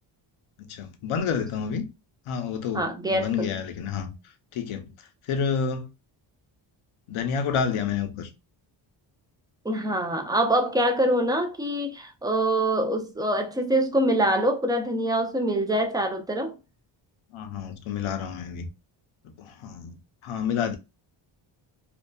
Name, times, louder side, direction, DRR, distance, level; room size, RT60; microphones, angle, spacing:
voice 1, 0.6-1.9 2.3-4.1 4.5-4.9 5.3-5.9 7.1-8.3 17.3-18.7 19.2-20.0 20.2-20.8, left 6 dB, 75° left, 0.8 m, -29 dB
voice 2, 2.7-3.5 9.6-16.6, right 1 dB, 10° right, 0.4 m, -25 dB
2.7 x 2.3 x 2.2 m
cardioid pair, 95°, 49 cm